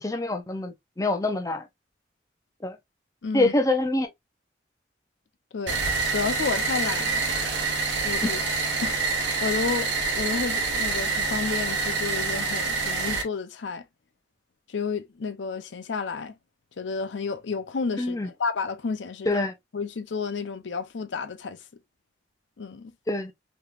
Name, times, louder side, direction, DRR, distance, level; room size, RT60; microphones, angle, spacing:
voice 1, 0.0-1.6 2.6-2.8 3.3-4.1 8.2-8.3 18.0-18.3 19.3-19.5 23.1-23.3, left 2 dB, 20° left, 0.5 m, -25 dB
voice 2, 3.2-3.5 5.5-5.8 6.1-7.3 8.0-8.4 8.8-13.8 14.7-16.3 16.8-19.4 19.7-21.6 22.6-22.9, left 5 dB, 90° left, 0.6 m, -31 dB
sound 1, 5.7-13.2, right 4 dB, 90° right, 0.9 m, -26 dB
3.4 x 3.0 x 2.4 m
head